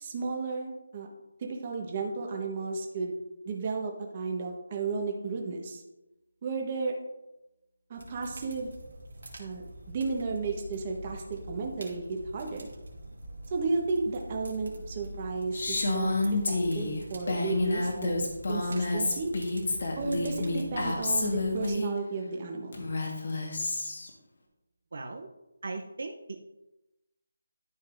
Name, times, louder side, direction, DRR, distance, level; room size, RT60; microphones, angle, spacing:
voice 1, 0.0-1.1 1.4-3.2 3.4-5.8 6.4-7.0 7.9-8.7 9.4-12.7 13.5-19.3 20.0-22.8, right 4 dB, 25° right, 2 dB, 1.2 m, -33 dB
sound 1, 7.9-21.7, right 1 dB, 80° right, 2.3 m, -45 dB
Female speech woman speaking, 15.5-21.9 22.7-24.1, left 2 dB, 55° left, 1.6 m, -29 dB
voice 2, 24.9-25.3 25.6-26.4, right 3 dB, 60° right, 4 dB, 0.7 m, -38 dB
12.0 x 5.4 x 2.6 m, 0.97 s
figure-of-eight pair, 170°, 0 cm